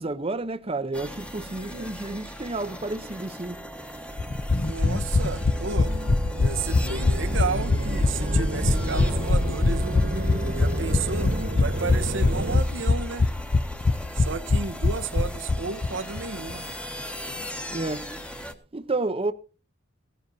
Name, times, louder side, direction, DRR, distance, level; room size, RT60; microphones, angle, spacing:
voice 1, 0.0-3.7 17.7-18.1 18.7-19.3, right 2 dB, 30° right, 0.7 m, -30 dB
sound 1, 0.9-18.5, equal, 5° left, 1.3 m, -39 dB
voice 2, 1.5-1.9 4.6-5.9 6.4-10.0 10.5-13.3 14.1-16.6, right 4 dB, 75° right, 0.9 m, -33 dB
sound 2, 4.2-15.9 16.2-16.3 16.5-16.6, left 3 dB, 40° left, 0.6 m, -23 dB
sound 3, 4.3-12.6, right 1 dB, 50° right, 1.4 m, -31 dB
17.5 x 14.5 x 2.7 m
head